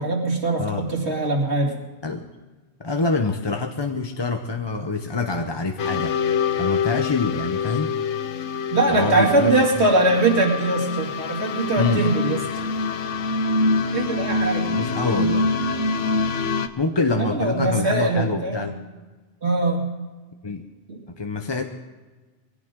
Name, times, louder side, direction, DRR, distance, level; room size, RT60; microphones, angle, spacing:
voice 1, 0.0-1.8 8.7-12.6 13.9-14.7 17.2-18.6 19.4-19.8 20.9-21.0, right 2 dB, 65° right, 1 dB, 2.7 m, -22 dB
voice 2, 2.8-6.2 6.6-8.0 8.9-9.5 11.8-12.0 14.7-15.5 16.8-18.7 20.4-20.6 21.2-21.6, left 3 dB, 25° left, 5 dB, 0.7 m, -25 dB
sound 1, 5.8-16.7, left 4 dB, 85° left, 1.2 m, -25 dB
21.5 x 16.5 x 3.7 m, 1.3 s
omnidirectional pair, 1.2 m